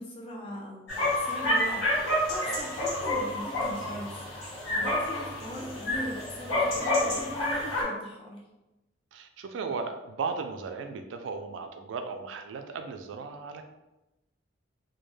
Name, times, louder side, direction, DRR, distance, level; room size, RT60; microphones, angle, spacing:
voice 1, 0.0-8.4, equal, 30° left, -2 dB, 0.4 m, -40 dB
sound 1, 0.9-7.8, left 1 dB, 90° left, 1.2 m, -29 dB
voice 2, 9.1-13.6, right 4 dB, 80° right, 7 dB, 0.3 m, -36 dB
2.1 x 2.1 x 3.1 m, 0.98 s
head